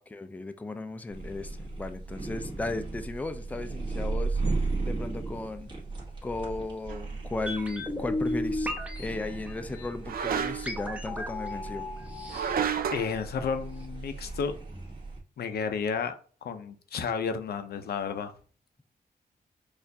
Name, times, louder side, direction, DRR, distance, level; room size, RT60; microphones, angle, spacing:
voice 1, 0.1-4.4 4.9-5.7 6.2-8.7 9.0-11.8, left 2 dB, 10° left, 0.4 m, -35 dB
sound 1, 1.1-15.2, right 3 dB, 30° right, 1.4 m, -36 dB
sound 2, 6.9-7.1 10.0-10.8 12.3-13.1, right 7 dB, 65° right, 0.4 m, -30 dB
sound 3, 7.5-13.5 13.8-13.9, left 1 dB, 10° right, 0.8 m, -35 dB
voice 2, 12.9-14.5 15.4-16.1 16.4-18.3, left 6 dB, 85° left, 0.5 m, -32 dB
4.3 x 2.5 x 2.7 m
wide cardioid pair, 95°, 16 cm